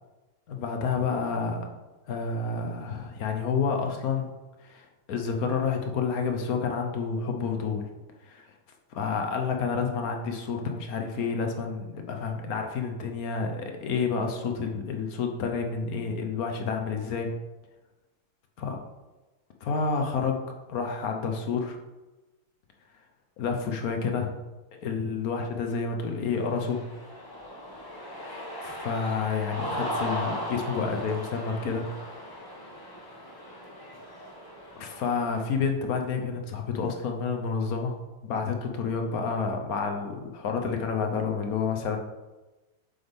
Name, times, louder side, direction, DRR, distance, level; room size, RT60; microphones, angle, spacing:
voice 1, 0.5-1.7 2.1-4.3 4.6-7.9 8.2-8.5 9.0-17.3 18.6-18.8 19.6-20.4 20.7-21.8 23.4-24.4 24.8-26.8 28.6-31.9 34.7-38.0 38.2-42.0, left 5 dB, 55° left, 4 dB, 1.1 m, -29 dB
Cheering, 26.2-35.5, equal, 15° left, 0.7 m, -37 dB
7.6 x 7.0 x 3.5 m, 1.1 s
omnidirectional pair, 2.3 m